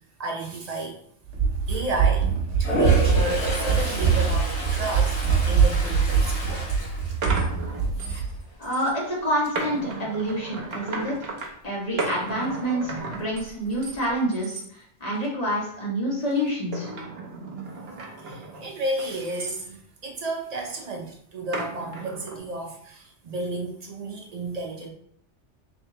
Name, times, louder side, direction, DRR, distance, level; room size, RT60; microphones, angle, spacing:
voice 1, 0.2-1.0 1.7-6.8 8.0-8.2 18.2-24.9, right 2 dB, 45° right, 1 dB, 0.6 m, -32 dB
Run, 1.3-8.3, right 6 dB, 90° right, 1.0 m, -23 dB
Toilet flush, 2.5-7.7 8.1-8.5 13.0-13.1 13.4-14.1, equal, 70° left, 1.4 m, -30 dB
sound 1, 6.7-8.3 8.6-8.9 9.4-11.5 12.0-14.0 14.3-14.7 15.1-15.5 16.3-19.7 21.5-22.4, right 3 dB, 60° right, 1.0 m, -35 dB
voice 2, 8.6-11.3 11.6-16.9, equal, 35° left, -5 dB, 1.4 m, -27 dB
3.5 x 3.2 x 2.8 m, 0.63 s
omnidirectional pair, 1.2 m